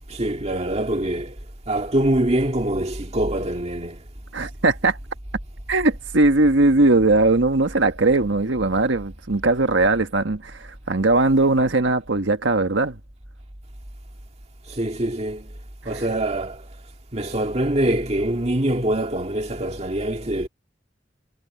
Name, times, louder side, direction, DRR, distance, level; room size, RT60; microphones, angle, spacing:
voice 1, 0.1-1.4 1.7-4.0 14.7-15.5 15.9-16.7 17.1-20.5, right 1 dB, 35° right, 2.0 m, -24 dB
voice 2, 4.3-5.0 5.7-13.0 15.9-16.0, right 2 dB, 85° right, 1.4 m, -19 dB
head